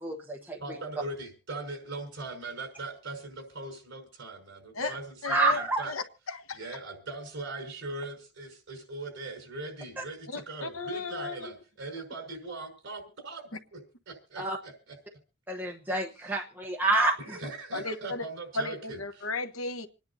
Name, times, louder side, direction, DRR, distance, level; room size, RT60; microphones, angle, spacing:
voice 1, 0.0-0.6 4.8-5.0 5.2-5.8 10.0-10.1 14.4-14.6 15.5-17.4, right 2 dB, 10° right, 0 dB, 1.0 m, -28 dB
voice 2, 0.6-5.9 6.5-14.7 17.2-19.3, right 2 dB, 60° right, 5 dB, 5.8 m, -40 dB
voice 3, 5.2-5.6 5.9-6.6 10.3-11.5 17.7-18.2 18.6-19.9, left 3 dB, 80° left, 8 dB, 1.2 m, -35 dB
27.0 x 10.5 x 2.8 m, 0.32 s
head